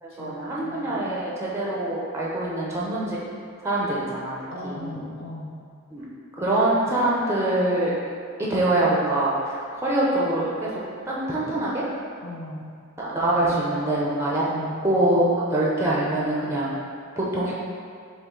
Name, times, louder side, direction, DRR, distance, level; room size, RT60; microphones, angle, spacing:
voice 1, 0.0-3.2 3.6-4.4 4.6-4.9 5.9-6.1 6.4-7.9 8.4-10.7 11.1-11.8 13.0-14.4 14.8-16.8 17.2-17.5, right 1 dB, 15° right, -6 dB, 0.6 m, -24 dB
voice 2, 0.6-1.1 4.5-5.5 12.2-12.7 14.4-14.8, left 1 dB, 60° left, -5 dB, 0.7 m, -37 dB
5.3 x 2.5 x 3.8 m, 2.2 s
head